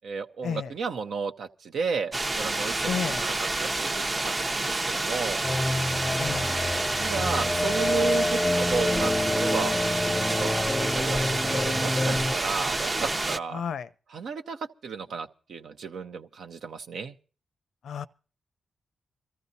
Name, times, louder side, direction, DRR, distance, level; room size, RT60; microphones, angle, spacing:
voice 1, 0.0-2.9 3.2-3.3 3.6-5.4 7.0-9.8 10.2-10.5 10.8-13.6 14.1-17.1, right 5 dB, 75° right, 0.8 m, -33 dB
sound 1, 2.1-13.4, right 2 dB, 35° right, 0.7 m, -28 dB
voice 2, 2.8-3.3 6.2-6.5 13.5-13.9 17.8-18.1, left 7 dB, 80° left, 0.6 m, -31 dB
sound 2, 5.4-12.3, left 1 dB, 20° left, 0.6 m, -28 dB
24.5 x 14.0 x 2.7 m
supercardioid pair, 50°, 0 cm